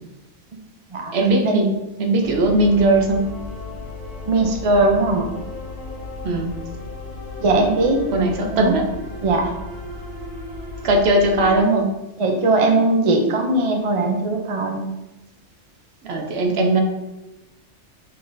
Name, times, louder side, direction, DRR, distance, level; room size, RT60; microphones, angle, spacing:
voice 1, 1.1-1.7 2.0-3.3 6.2-6.5 8.1-8.8 10.8-11.9 16.1-16.8, right 2 dB, 65° right, 2 dB, 0.9 m, -18 dB
sound 1, 2.2-11.6, left 2 dB, 35° left, 1.5 m, -35 dB
voice 2, 4.3-5.3 7.4-8.0 8.5-8.8 9.2-9.5 12.2-14.9, right 2 dB, 45° right, 2 dB, 0.4 m, -19 dB
5.7 x 3.2 x 2.6 m, 1.0 s
omnidirectional pair, 1.3 m